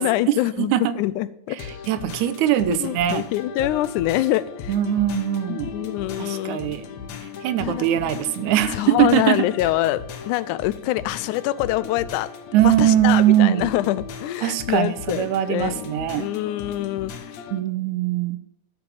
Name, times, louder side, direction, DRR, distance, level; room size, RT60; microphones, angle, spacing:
voice 1, 0.0-1.6 2.7-4.7 5.5-6.8 7.6-7.8 8.7-12.3 12.6-15.9 16.2-17.4, left 15 dB, 90° left, 17 dB, 2.0 m, -25 dB
voice 2, 0.6-0.9 1.5-3.3 4.7-5.8 6.2-6.9 7.4-9.5 12.5-13.7 14.4-16.3 17.5-18.4, right 12 dB, 80° right, 13 dB, 2.1 m, -21 dB
sound 1, 1.6-17.6, left 6 dB, 65° left, 2.2 m, -37 dB
11.5 x 5.4 x 7.4 m, 0.77 s
omnidirectional pair, 3.4 m